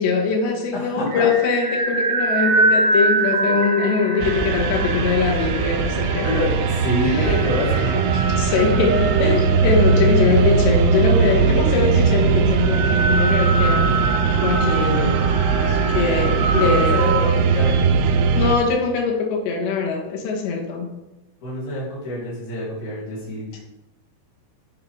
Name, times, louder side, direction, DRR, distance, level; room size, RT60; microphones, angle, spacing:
voice 1, 0.0-6.3 7.0-7.3 8.1-13.9 14.4-15.2 15.7-17.0 18.4-20.9, left 5 dB, 75° left, 0 dB, 3.4 m, -22 dB
voice 2, 0.7-1.3 4.4-4.5 6.2-8.0 10.2-10.5 14.6-15.3 16.5-17.8 21.4-23.6, left 1 dB, 45° left, -8 dB, 4.2 m, -26 dB
sound 1, 1.1-17.2, right 2 dB, 60° right, 2.5 m, -25 dB
sound 2, 4.2-18.6, right 5 dB, 80° right, 2.4 m, -19 dB
9.0 x 6.8 x 3.8 m, 0.98 s
omnidirectional pair, 5.4 m